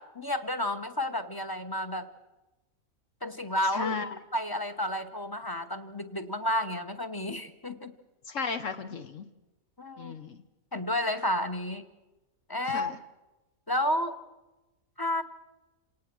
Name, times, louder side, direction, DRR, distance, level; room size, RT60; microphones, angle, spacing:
voice 1, 0.0-2.1 3.2-4.0 4.3-7.9 9.8-10.1 10.7-11.8 12.5-12.9 13.7-14.2 15.0-15.2, left 1 dB, 20° left, 8 dB, 1.0 m, -31 dB
voice 2, 3.7-4.2 8.3-9.3 10.0-10.4 12.7-13.0, left 5 dB, 65° left, 8 dB, 1.3 m, -34 dB
27.5 x 18.5 x 6.1 m, 1.1 s
omnidirectional pair, 1.4 m